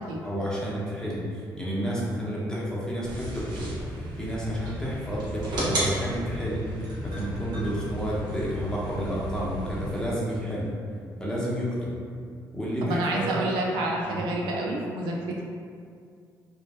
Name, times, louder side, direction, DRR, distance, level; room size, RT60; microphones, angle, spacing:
voice 1, 0.2-6.7 7.0-10.7 11.2-11.9 12.5-13.2 14.0-14.2, equal, 10° left, -7 dB, 0.7 m, -30 dB
sound 1, 3.0-10.0, right 1 dB, 65° right, 0.8 m, -33 dB
voice 2, 12.8-15.4, right 1 dB, 85° right, -2 dB, 0.3 m, -28 dB
2.5 x 2.1 x 2.3 m, 2.2 s
supercardioid pair, 70°, 8 cm